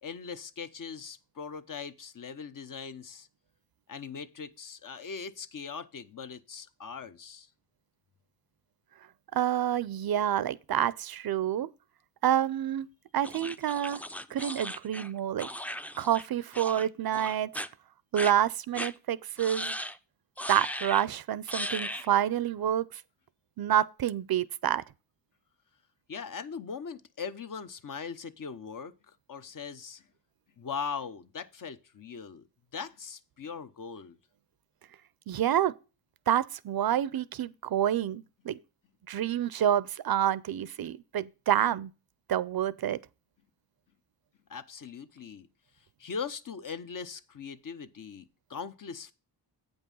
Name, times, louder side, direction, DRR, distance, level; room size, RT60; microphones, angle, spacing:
voice 1, 0.0-3.3 3.9-7.5 26.1-30.0 30.6-32.5 32.7-34.2 44.5-45.5 46.0-49.1, left 6 dB, 50° left, 0.8 m, -40 dB
voice 2, 9.3-11.7 12.2-12.9 13.1-14.0 14.3-15.5 16.0-17.5 18.1-19.7 20.5-23.0 23.6-24.8 35.3-35.7 36.3-38.6 39.1-41.9 42.3-43.0, right 10 dB, 60° right, 0.5 m, -28 dB
sound 1, 13.2-16.3 16.5-16.9 17.1-17.7 18.1-18.3 18.7-18.9 19.4-20.0 20.4-21.0 21.5-22.1, equal, 5° left, 0.4 m, -37 dB
8.3 x 5.4 x 5.3 m
wide cardioid pair, 95°, 42 cm